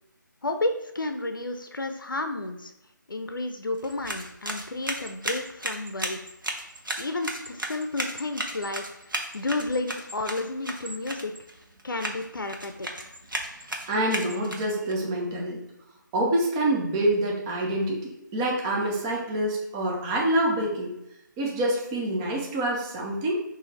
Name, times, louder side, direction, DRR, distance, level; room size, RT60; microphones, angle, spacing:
voice 1, 0.4-2.7 3.1-6.2 7.0-8.8 9.3-11.3 11.8-13.1, left 2 dB, 80° left, 5 dB, 0.5 m, -31 dB
sound 1, 3.7-14.9, right 1 dB, 80° right, 0.9 m, -35 dB
voice 2, 13.9-15.6 16.1-20.9 21.4-23.3, right 1 dB, 10° right, -1 dB, 0.4 m, -26 dB
6.3 x 2.6 x 3.1 m, 0.83 s
figure-of-eight pair, 155°, 11 cm